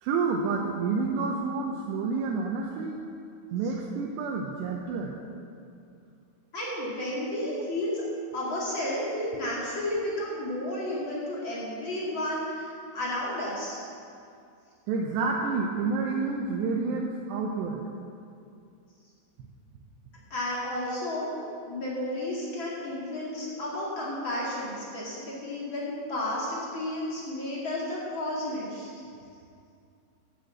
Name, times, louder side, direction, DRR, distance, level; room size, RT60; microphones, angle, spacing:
voice 1, 0.0-3.0 3.5-5.1 14.9-17.8, right 4 dB, 80° right, 0 dB, 2.6 m, -29 dB
voice 2, 6.5-8.0 8.3-13.8 20.3-21.3 21.6-28.9, left 1 dB, 40° left, -6 dB, 1.7 m, -32 dB
11.0 x 8.3 x 7.7 m, 2.5 s
omnidirectional pair, 5.8 m